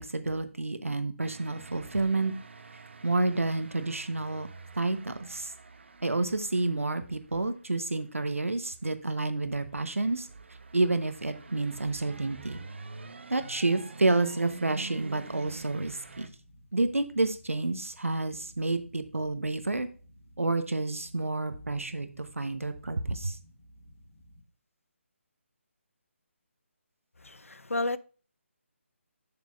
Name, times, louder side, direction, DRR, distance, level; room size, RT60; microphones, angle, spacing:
voice 1, 0.0-2.3 3.0-4.5 4.7-5.5 6.0-10.3 10.7-12.6 13.3-16.3 16.7-19.9 20.4-23.4, right 2 dB, 75° right, 1.1 m, -29 dB
sound 1, 1.2-16.3, right 4 dB, 55° right, 0.9 m, -47 dB
sound 2, 14.7-24.4, equal, 10° left, 4.4 m, -57 dB
voice 2, 27.2-28.0, left 2 dB, 80° left, 0.5 m, -31 dB
9.6 x 6.6 x 2.6 m
figure-of-eight pair, 150°, 7 cm